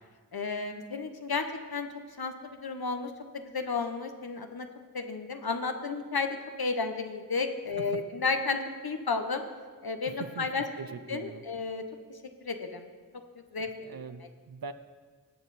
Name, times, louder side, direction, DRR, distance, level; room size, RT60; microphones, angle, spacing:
voice 1, 0.3-1.5 1.7-4.7 4.9-9.4 9.8-10.6 11.1-11.8 12.4-12.9 13.3-13.7, left 4 dB, 85° left, 6 dB, 0.9 m, -32 dB
voice 2, 10.1-11.4 13.8-14.7, right 5 dB, 75° right, 12 dB, 0.6 m, -42 dB
18.0 x 6.4 x 4.1 m, 1.5 s
wide cardioid pair, 40°, 36 cm